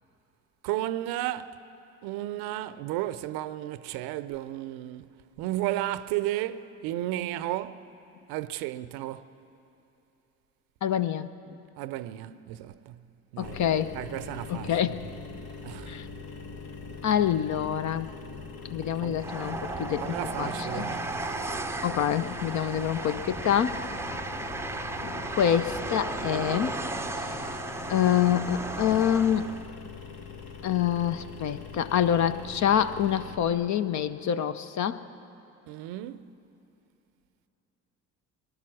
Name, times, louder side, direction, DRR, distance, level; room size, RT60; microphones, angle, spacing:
voice 1, 0.6-1.6 2.0-7.9 8.3-9.3 11.8-13.0 13.3-13.6 13.9-15.2 15.6-16.0 19.0-19.2 20.0-21.1 35.7-36.3, right 14 dB, 65° right, 0.6 m, -33 dB
voice 2, 10.8-11.6 13.4-13.9 14.5-15.0 15.9-16.1 17.0-18.1 18.7-20.9 21.8-23.8 25.0-26.8 27.1-27.2 27.9-29.5 30.6-35.0, left 9 dB, 45° left, 0.7 m, -26 dB
sound 1, 13.4-33.4, left 5 dB, 70° left, 1.4 m, -43 dB
Train, 19.2-29.7, right 2 dB, 5° right, 0.6 m, -35 dB
19.5 x 11.0 x 6.3 m
hypercardioid pair, 60°, 40 cm